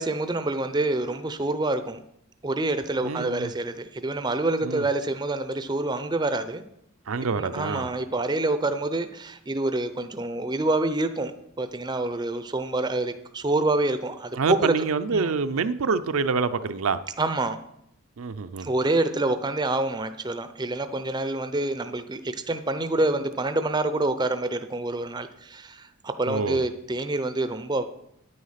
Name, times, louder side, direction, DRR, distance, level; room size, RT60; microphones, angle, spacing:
voice 1, 0.0-2.0 2.4-6.6 7.4-14.7 15.1-15.3 17.2-17.6 18.6-27.8, right 2 dB, 20° right, 10 dB, 0.5 m, -27 dB
voice 2, 3.0-3.5 4.6-4.8 7.1-7.9 14.3-17.0 18.2-18.7 26.3-26.6, right 4 dB, 70° right, 10 dB, 0.5 m, -26 dB
9.6 x 9.1 x 5.7 m, 0.78 s
head